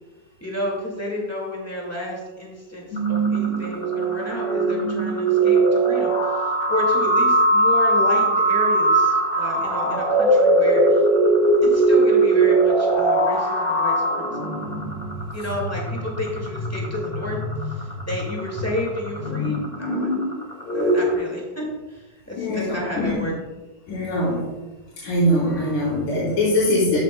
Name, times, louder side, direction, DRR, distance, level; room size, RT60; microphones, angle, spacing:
voice 1, 0.4-11.0 11.6-14.3 15.3-17.4 17.6-20.1 20.7-23.3, left 1 dB, 10° left, -2 dB, 1.0 m, -31 dB
sound 1, 2.9-21.1, right 2 dB, 25° left, 1.5 m, -20 dB
voice 2, 22.4-23.1 23.9-24.5 25.0-27.0, left 1 dB, 85° left, -8 dB, 4.1 m, -22 dB
13.5 x 7.3 x 2.2 m, 1.1 s
omnidirectional pair, 3.6 m